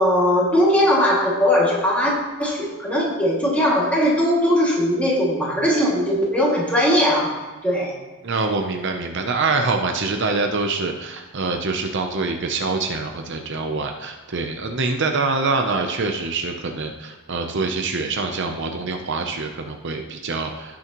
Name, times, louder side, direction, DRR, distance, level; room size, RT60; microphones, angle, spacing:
voice 1, 0.0-2.1 2.4-7.3 7.6-7.9, equal, 5° left, -5 dB, 2.3 m, -19 dB
voice 2, 8.2-20.8, right 3 dB, 55° right, 4 dB, 0.7 m, -25 dB
16.5 x 6.2 x 3.1 m, 1.2 s
head